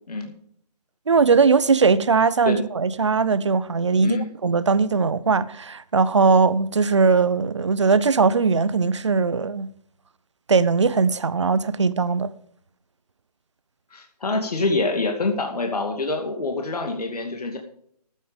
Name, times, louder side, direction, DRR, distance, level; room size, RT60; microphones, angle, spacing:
voice 1, 1.1-9.7 10.5-12.3, right 4 dB, 45° right, 0.6 m, -20 dB
voice 2, 13.9-17.6, left 3 dB, 70° left, 2.4 m, -26 dB
14.5 x 8.5 x 5.2 m
hypercardioid pair, 175°, 21 cm